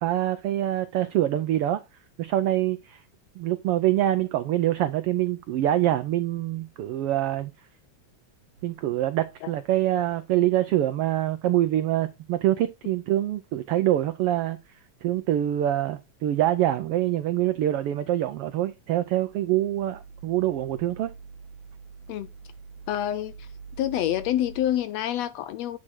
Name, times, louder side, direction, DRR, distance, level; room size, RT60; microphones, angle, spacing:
voice 1, 0.0-1.8 2.2-3.0 3.4-7.5 8.6-21.1, right 13 dB, 90° right, 1.2 m, -25 dB
sound 1, 8.5-10.1 18.7-24.8, right 5 dB, 65° right, 2.3 m, -46 dB
voice 2, 22.9-23.5 23.8-25.8, left 12 dB, 75° left, 1.6 m, -27 dB
9.8 x 4.2 x 4.5 m
omnidirectional pair, 3.4 m